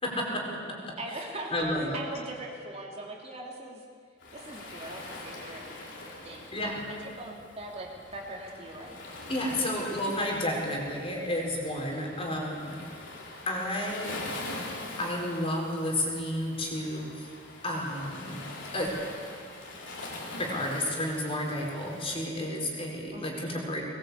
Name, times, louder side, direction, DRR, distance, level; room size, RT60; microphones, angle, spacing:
voice 1, 0.0-1.0 1.5-2.0 6.5-6.8 9.3-12.8 13.5-14.2 15.0-17.3 17.6-18.5 18.7-18.9 20.4-23.8, left 1 dB, 30° left, -1 dB, 4.7 m, -31 dB
voice 2, 1.0-3.8 4.3-6.5 6.9-9.0 23.1-23.6, right 1 dB, 35° right, -1 dB, 3.0 m, -41 dB
Waves surf, 4.2-22.2, left 2 dB, 65° left, 4.2 m, -43 dB
20.5 x 20.0 x 8.4 m, 2.1 s
head